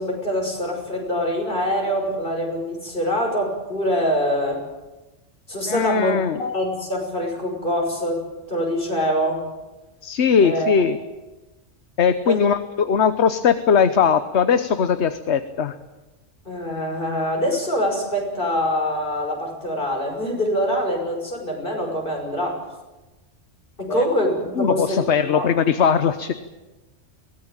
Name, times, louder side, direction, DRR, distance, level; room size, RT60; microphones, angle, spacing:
voice 1, 0.0-4.6 5.5-9.5 10.4-10.7 12.3-12.4 16.5-22.6 23.8-25.5, equal, 45° left, 1 dB, 6.1 m, -24 dB
voice 2, 5.7-6.4 10.0-11.0 12.0-15.8 23.9-24.0 24.6-26.3, left 7 dB, 70° left, 10 dB, 1.3 m, -19 dB
23.0 x 18.5 x 8.9 m, 1.1 s
omnidirectional pair, 1.2 m